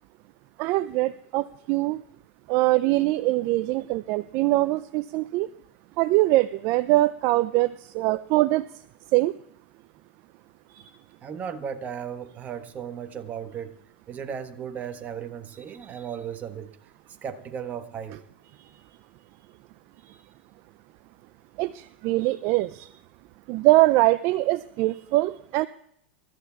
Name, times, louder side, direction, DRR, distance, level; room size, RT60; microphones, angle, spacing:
voice 1, 0.6-2.0 2.5-5.5 6.0-8.6 9.1-9.3 21.6-22.9 23.5-25.7, right 18 dB, 45° right, 14 dB, 0.4 m, -23 dB
voice 2, 11.2-13.7 14.1-16.8 17.2-18.2, right 7 dB, 25° right, 7 dB, 1.3 m, -35 dB
28.0 x 13.5 x 2.4 m, 0.71 s
hypercardioid pair, 110°, 6 cm